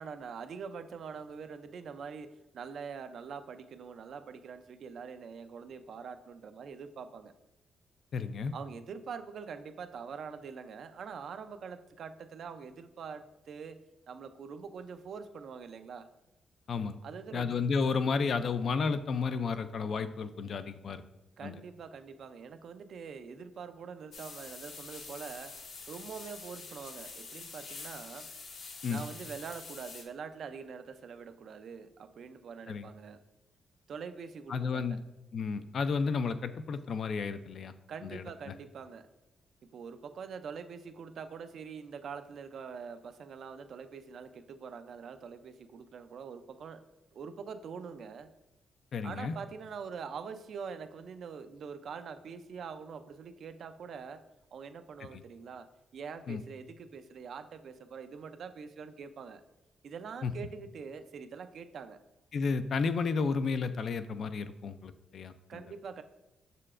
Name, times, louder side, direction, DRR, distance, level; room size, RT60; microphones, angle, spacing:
voice 1, 0.0-7.3 8.5-13.8 14.1-16.1 17.0-17.6 21.4-25.5 25.9-28.3 28.9-33.2 33.9-35.0 37.9-39.1 39.7-46.8 47.1-48.3 49.0-54.2 54.5-55.7 55.9-59.4 59.8-62.0 65.5-66.0, right 6 dB, 55° right, 9 dB, 0.4 m, -44 dB
voice 2, 8.1-8.5 16.7-17.0 17.3-21.0 21.4-21.6 28.8-29.0 32.7-32.9 34.5-35.0 35.3-37.7 38.0-38.2 48.9-49.4 55.1-55.2 56.3-56.4 60.2-60.3 62.3-65.6, left 5 dB, 50° left, 11 dB, 0.3 m, -32 dB
sound 1, 24.1-30.0, left 4 dB, 65° left, 0.8 m, -46 dB
6.7 x 6.6 x 2.5 m, 0.95 s
wide cardioid pair, 160°, 0 cm